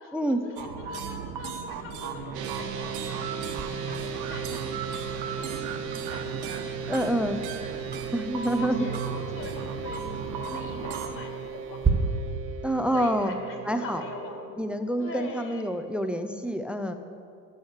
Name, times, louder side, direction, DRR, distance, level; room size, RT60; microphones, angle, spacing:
voice 1, 0.0-3.4 3.7-5.0 5.3-7.2 8.5-12.1 12.9-14.6 15.0-15.7, left 3 dB, 40° left, 1 dB, 2.6 m, -42 dB
sound 1, 0.6-11.1, right 6 dB, 50° right, 1.4 m, -37 dB
sound 2, 2.3-14.5, right 6 dB, 75° right, 1.2 m, -37 dB
Tick-tock, 3.6-11.9, right 6 dB, 20° right, 1.4 m, -37 dB
voice 2, 6.9-7.4 8.1-8.9 12.6-13.3 13.7-14.0 14.6-16.9, right 1 dB, ahead, 8 dB, 0.4 m, -27 dB
12.5 x 6.4 x 7.1 m, 2.3 s
hypercardioid pair, 90°, 48 cm